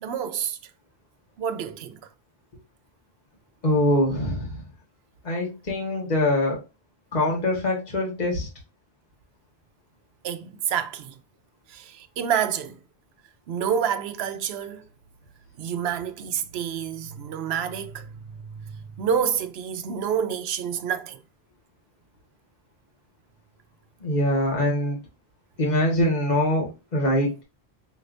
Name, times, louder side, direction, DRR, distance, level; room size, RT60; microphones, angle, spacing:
voice 1, 0.0-0.6 1.4-2.0 10.2-11.2 11.7-12.8 13.5-14.9 15.6-18.1 18.4-21.2, right 8 dB, 85° right, 0.8 m, -28 dB
voice 2, 3.6-4.6 5.2-6.6 7.1-8.5 24.0-25.0 25.6-27.4, left 1 dB, 45° left, 1.7 m, -23 dB
5.5 x 3.2 x 2.5 m
omnidirectional pair, 1.0 m